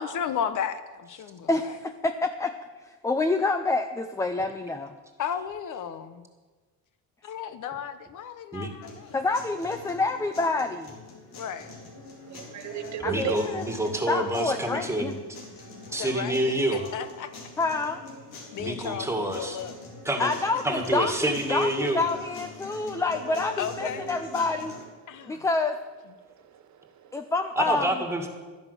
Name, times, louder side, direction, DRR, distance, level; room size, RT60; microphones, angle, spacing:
voice 1, 0.0-1.8 5.2-6.3 7.2-9.3 11.3-11.9 13.0-13.6 16.0-16.4 16.7-17.3 18.5-19.8 23.6-24.1 25.1-25.5, left 8 dB, 55° left, 11 dB, 0.9 m, -34 dB
voice 2, 1.5-2.5 3.0-4.9 9.1-10.9 13.0-13.6 14.1-15.1 17.6-18.0 20.2-24.8 25.3-25.8 27.1-28.0, left 3 dB, 10° left, 8 dB, 0.4 m, -27 dB
sound 1, 8.8-24.8, left 3 dB, 90° left, 3.9 m, -44 dB
voice 3, 12.0-13.4 15.5-16.0 18.4-18.8 22.6-23.0 25.0-25.5 26.2-27.3, right 10 dB, 50° right, 9 dB, 1.1 m, -38 dB
voice 4, 13.0-15.2 15.9-16.8 18.6-19.6 20.1-20.3 20.6-22.0 27.6-28.3, right 1 dB, 5° right, 4 dB, 1.9 m, -27 dB
12.5 x 10.5 x 6.7 m, 1.3 s
cardioid pair, 140°, 37 cm